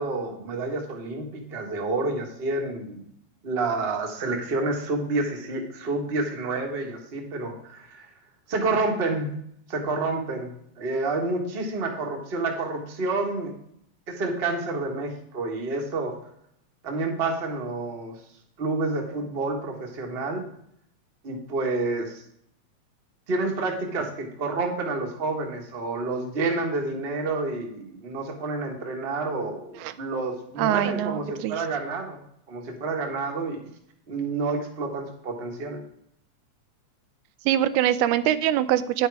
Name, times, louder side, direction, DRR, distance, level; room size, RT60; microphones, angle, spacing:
voice 1, 0.0-3.1 3.4-8.1 8.5-9.3 9.7-13.5 14.1-16.1 16.8-18.1 18.6-20.5 21.2-22.2 23.3-32.2 32.5-33.7 34.1-35.8, right 3 dB, 35° right, 1 dB, 0.9 m, -29 dB
voice 2, 30.6-31.6 37.5-39.1, right 12 dB, 90° right, 13 dB, 2.0 m, -23 dB
10.0 x 5.6 x 4.7 m, 0.71 s
omnidirectional pair, 3.4 m